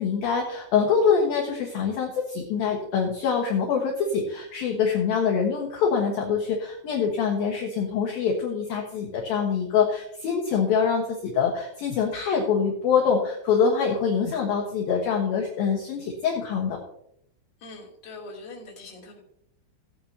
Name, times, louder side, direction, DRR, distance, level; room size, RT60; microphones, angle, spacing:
voice 1, 0.0-16.8, left 6 dB, 65° left, 0 dB, 2.6 m, -24 dB
voice 2, 17.6-19.2, left 2 dB, 30° left, -4 dB, 2.8 m, -42 dB
17.0 x 9.1 x 2.8 m, 0.73 s
omnidirectional pair, 5.6 m